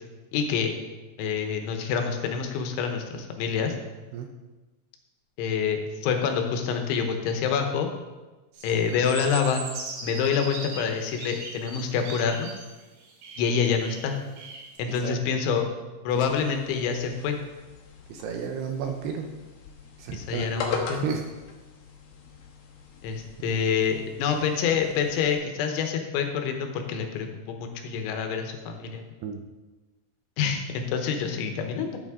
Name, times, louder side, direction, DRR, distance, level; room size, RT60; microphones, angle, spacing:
voice 1, 0.3-0.7 1.2-3.7 5.4-7.9 8.6-9.6 10.0-12.5 13.4-14.2 14.8-15.7 16.0-17.4 20.1-21.0 23.0-29.1 30.4-32.0, left 6 dB, 85° left, 5 dB, 3.3 m, -27 dB
sound 1, 8.5-14.8, right 3 dB, 60° right, 2.5 m, -39 dB
sound 2, 16.1-25.3, left 5 dB, 65° left, 2.6 m, -40 dB
voice 2, 18.1-19.3 20.0-20.7 21.0-21.2 29.2-29.4, right 6 dB, 80° right, 3 dB, 2.6 m, -32 dB
12.5 x 7.4 x 3.6 m, 1.2 s
omnidirectional pair, 5.3 m